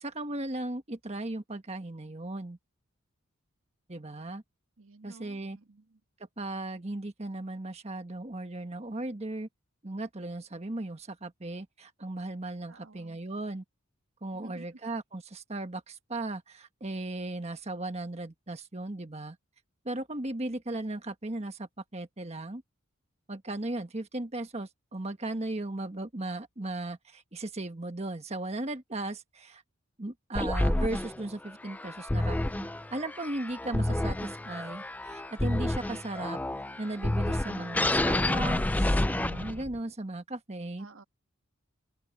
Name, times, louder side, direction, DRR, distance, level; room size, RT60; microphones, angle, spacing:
voice 1, 0.0-2.6 3.9-4.4 5.0-5.6 6.4-9.5 9.8-13.6 14.2-19.4 19.8-22.6 23.3-29.6 30.0-36.4 36.8-40.9, right 2 dB, 30° right, 1.3 m, -37 dB
voice 2, 4.8-6.0 12.7-13.2 14.4-14.7 40.8-41.0, right 3 dB, 70° right, 1.6 m, -52 dB
sound 1, 30.4-39.8, left 1 dB, 10° left, 0.3 m, -29 dB
open air
head